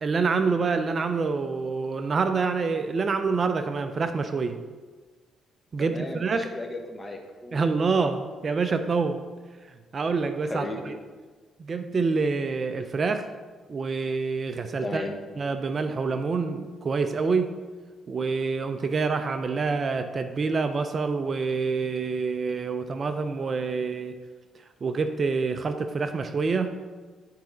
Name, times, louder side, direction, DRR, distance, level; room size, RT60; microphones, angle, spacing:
voice 1, 0.0-4.6 5.7-6.5 7.5-9.2 9.9-10.9 11.6-13.3 13.7-15.1 15.4-17.6 18.1-24.2 24.8-26.7, right 4 dB, 40° right, 8 dB, 0.5 m, -27 dB
voice 2, 5.8-7.6 10.4-10.9 14.8-15.2, left 2 dB, 20° left, 3 dB, 1.1 m, -35 dB
9.5 x 4.7 x 3.9 m, 1.4 s
cardioid pair, 90°, 0 cm